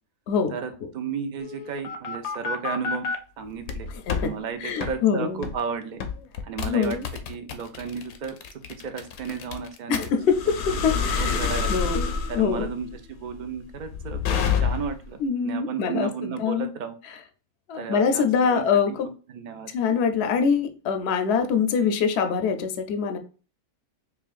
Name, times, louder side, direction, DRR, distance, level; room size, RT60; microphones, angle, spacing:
voice 1, 0.5-3.1 3.4-3.9 4.1-6.0 6.4-7.0 7.3-8.4 8.8-10.0 10.9-11.7 12.3-17.0 17.8-19.7, right 6 dB, 70° right, 7 dB, 0.4 m, -33 dB
sound 1, 1.4-3.2 3.6-4.3 4.8-5.0 5.4-5.6 6.0-15.1, left 6 dB, 85° left, 1.1 m, -28 dB
voice 2, 3.9-4.3 4.6-5.4 6.7-7.1 9.9-12.7 15.2-16.7 17.7-19.1 19.7-23.2, left 6 dB, 60° left, 6 dB, 0.7 m, -24 dB
5.5 x 2.3 x 2.4 m, 0.36 s
omnidirectional pair, 1.5 m